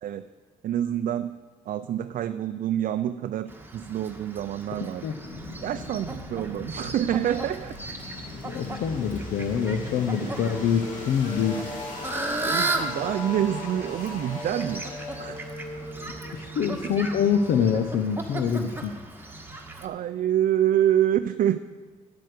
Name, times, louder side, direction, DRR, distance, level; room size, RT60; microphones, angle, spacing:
voice 1, 0.6-1.3 1.7-5.0 5.6-7.8 12.5-14.9 15.2-15.5 16.8-17.0 19.8-21.6, right 11 dB, 65° right, 10 dB, 0.4 m, -27 dB
Fowl, 3.5-19.9, right 2 dB, 15° right, 1.4 m, -36 dB
sound 1, 5.2-18.0, left 2 dB, 60° left, 2.8 m, -39 dB
voice 2, 8.4-11.6 16.3-18.9, left 7 dB, 80° left, 6 dB, 0.7 m, -25 dB
9.5 x 7.6 x 6.6 m, 1.4 s
cardioid pair, 70°, 15 cm